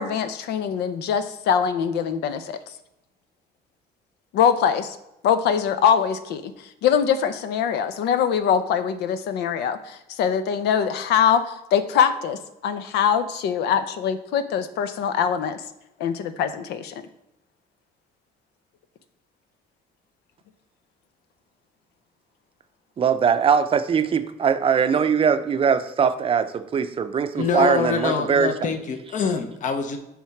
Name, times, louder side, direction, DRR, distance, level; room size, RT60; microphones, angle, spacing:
voice 1, 0.0-2.7 4.3-5.0 5.2-15.6 16.0-17.0, left 7 dB, 80° left, 11 dB, 0.7 m, -23 dB
voice 2, 23.0-28.5, right 6 dB, 35° right, 10 dB, 0.6 m, -21 dB
voice 3, 27.3-30.0, left 5 dB, 50° left, 6 dB, 0.9 m, -25 dB
7.1 x 3.7 x 5.8 m, 0.86 s
cardioid pair, 110°, 17 cm